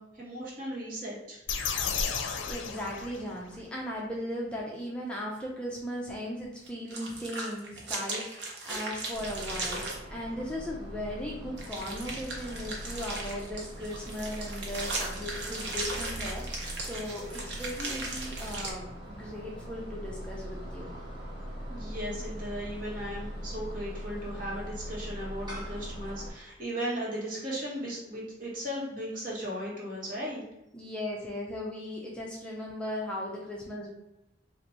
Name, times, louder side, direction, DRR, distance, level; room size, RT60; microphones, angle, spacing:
voice 1, 0.0-1.4 21.7-30.4, equal, 50° right, -5 dB, 1.3 m, -36 dB
sound 1, 1.5-3.6, left 6 dB, 80° left, 0.5 m, -33 dB
voice 2, 2.5-20.9 30.7-33.9, left 1 dB, 5° left, -4 dB, 0.5 m, -37 dB
sound 2, 6.7-10.0 11.6-18.7, right 2 dB, 65° right, 0.9 m, -37 dB
sound 3, 9.1-26.3, equal, 25° right, 1.2 m, -41 dB
2.9 x 2.5 x 4.2 m, 0.89 s
head